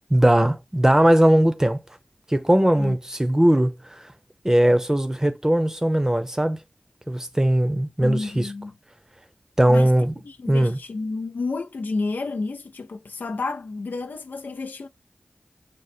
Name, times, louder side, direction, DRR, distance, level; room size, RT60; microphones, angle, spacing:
voice 1, 0.1-1.8 2.3-4.0 4.4-6.6 7.1-8.5 9.6-10.1 10.5-10.8, right 1 dB, 15° right, 0.7 m, -19 dB
voice 2, 8.0-8.7 9.7-9.9 10.2-14.9, left 3 dB, 80° left, 0.4 m, -30 dB
5.1 x 2.1 x 4.2 m
cardioid pair, 45°, 3 cm